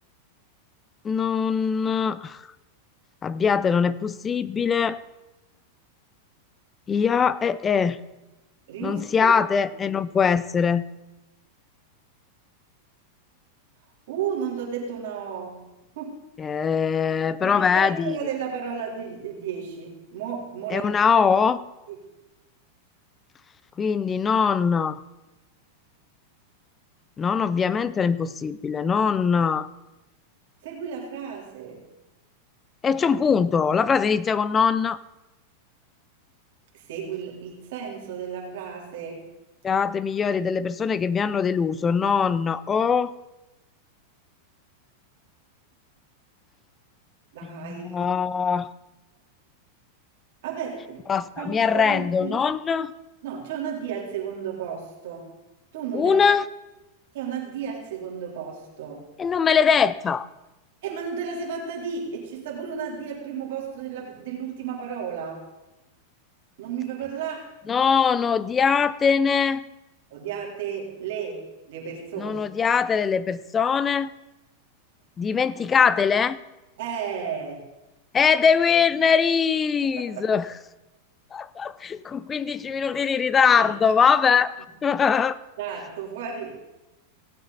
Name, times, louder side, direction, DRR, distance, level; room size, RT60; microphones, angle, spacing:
voice 1, 1.0-2.4 3.2-5.0 6.9-8.0 8.8-10.8 16.4-18.2 20.7-21.6 23.8-25.0 27.2-29.7 32.8-35.0 39.6-43.1 47.5-48.7 51.1-52.9 55.9-56.4 59.2-60.3 67.7-69.6 72.2-74.1 75.2-76.4 78.1-80.5 81.3-84.5 84.8-85.4, left 6 dB, 20° left, 18 dB, 0.5 m, -22 dB
voice 2, 8.7-9.3 9.7-9.8 14.1-15.7 16.0-16.2 17.4-21.0 21.9-22.0 30.6-31.8 36.7-39.2 47.3-48.1 50.4-51.0 51.4-52.4 53.2-55.3 55.7-56.2 57.1-59.0 60.8-65.4 66.6-67.5 70.1-72.4 76.8-77.6 79.8-80.2 82.5-82.7 83.6-83.7 85.6-86.6, right 7 dB, 70° right, -2 dB, 3.5 m, -33 dB
17.5 x 8.0 x 4.0 m, 1.0 s
hypercardioid pair, 125°, 0 cm